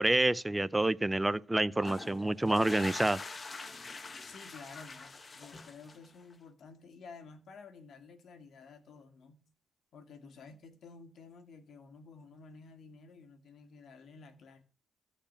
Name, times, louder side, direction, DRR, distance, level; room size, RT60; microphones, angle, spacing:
voice 1, 0.0-3.2, right 2 dB, 10° right, 0.6 m, -28 dB
sound 1, 1.7-6.3, left 3 dB, 30° left, 1.4 m, -44 dB
voice 2, 4.2-9.4 9.9-14.6, left 4 dB, 60° left, 2.2 m, -52 dB
14.0 x 5.0 x 8.7 m
cardioid pair, 90°, 0 cm